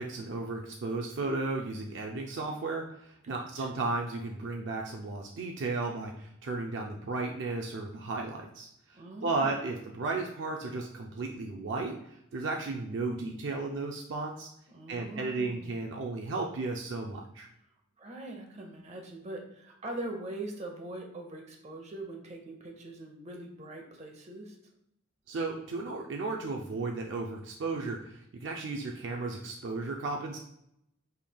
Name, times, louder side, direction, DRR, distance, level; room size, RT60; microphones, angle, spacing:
voice 1, 0.0-14.5 14.9-17.5 25.3-30.4, right 3 dB, 65° right, 1 dB, 0.4 m, -34 dB
voice 2, 3.3-3.9 8.9-9.6 14.7-15.7 18.0-24.6, right 2 dB, 35° right, 2 dB, 0.8 m, -42 dB
5.4 x 3.1 x 2.2 m, 0.78 s
head